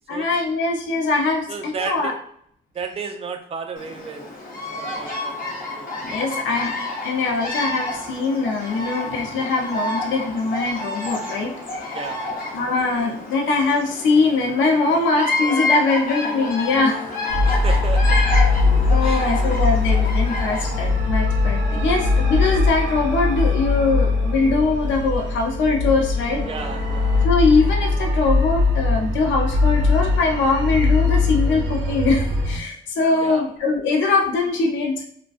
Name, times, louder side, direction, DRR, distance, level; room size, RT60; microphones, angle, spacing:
voice 1, 0.1-2.1 6.0-6.7 7.0-12.0 12.5-17.0 17.5-17.6 18.7-26.4 27.2-35.0, left 3 dB, 70° left, 1 dB, 0.6 m, -22 dB
voice 2, 1.5-2.2 2.7-4.3 4.8-6.5 11.9-12.5 17.5-18.4 19.0-19.4 26.5-27.3 33.2-33.5, right 5 dB, 30° right, 5 dB, 0.4 m, -34 dB
Bird vocalization bird call bird song, 3.8-21.0, left 2 dB, 45° left, 0.8 m, -29 dB
sound 1, 16.2-27.3, left 4 dB, 20° left, 0.5 m, -39 dB
sound 2, 17.3-32.6, left 3 dB, 65° right, 0.7 m, -20 dB
2.4 x 2.2 x 2.4 m, 0.66 s
cardioid pair, 90°, 20 cm